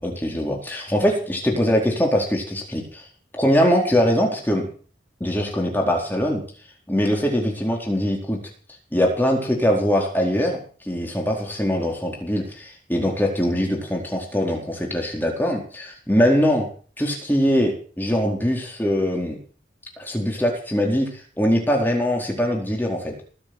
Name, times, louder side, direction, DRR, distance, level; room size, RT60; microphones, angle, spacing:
voice 1, 0.0-3.1 3.3-4.7 5.2-6.4 6.9-8.4 8.9-16.7 17.0-19.4 20.0-23.1, equal, 10° left, 0 dB, 4.3 m, -22 dB
19.5 x 7.7 x 8.0 m, 0.41 s
head